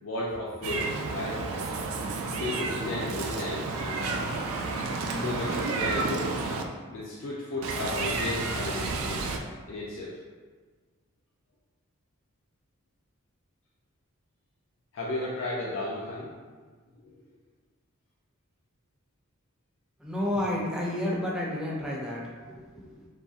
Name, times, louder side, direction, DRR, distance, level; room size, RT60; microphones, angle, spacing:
voice 1, 0.0-1.4 2.3-4.5 5.1-6.4 6.9-9.4 9.7-10.2 14.9-16.3 17.0-17.1, left 2 dB, 65° left, -5 dB, 0.4 m, -34 dB
Meow, 0.6-6.6 7.6-9.4, right 3 dB, 85° right, 0.3 m, -31 dB
voice 2, 20.0-23.1, left 1 dB, 5° right, -4 dB, 0.4 m, -31 dB
2.7 x 2.6 x 2.3 m, 1.4 s
head